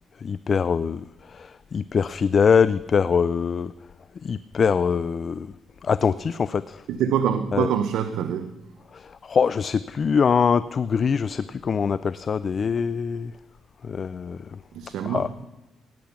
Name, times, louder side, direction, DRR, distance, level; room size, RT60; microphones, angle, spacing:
voice 1, 0.2-1.0 1.3-3.7 4.2-5.5 5.8-6.8 7.5-7.7 8.9-13.3 13.8-14.4 15.1-15.3, left 6 dB, 45° left, 16 dB, 0.4 m, -23 dB
voice 2, 6.9-8.5 14.7-15.5, right 8 dB, 80° right, 9 dB, 0.8 m, -25 dB
16.5 x 10.5 x 5.9 m, 1.1 s
cardioid pair, 90°, 0 cm